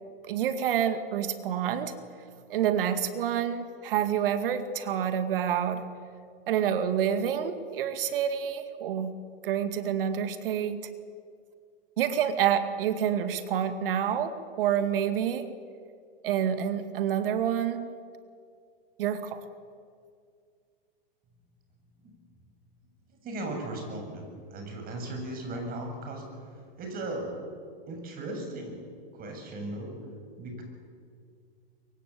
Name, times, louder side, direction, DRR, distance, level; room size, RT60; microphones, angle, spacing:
voice 1, 0.3-1.9 2.5-5.9 6.5-9.2 9.4-10.8 12.0-15.5 16.2-17.9 19.0-19.4, right 9 dB, 65° right, 10 dB, 2.1 m, -28 dB
voice 2, 23.1-26.2 26.8-27.3 27.9-28.9 29.1-30.0 30.4-30.6, right 1 dB, 30° right, 3 dB, 7.6 m, -37 dB
23.5 x 23.5 x 8.5 m, 2.2 s
hypercardioid pair, 125°, 30 cm